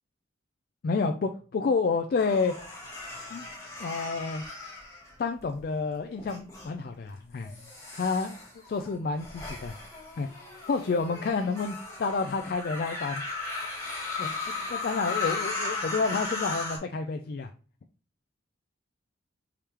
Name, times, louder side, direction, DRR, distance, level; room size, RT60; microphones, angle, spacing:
voice 1, 0.8-2.5 3.3-3.5 3.8-4.4 5.2-7.6 7.9-8.4 8.7-9.7 10.2-13.2 14.2-17.5, left 4 dB, 50° left, 6 dB, 0.3 m, -29 dB
sound 1, 2.2-5.6 6.2-6.7 7.4-16.8, left 3 dB, 15° left, 1.4 m, -36 dB
4.8 x 3.5 x 2.9 m, 0.40 s
head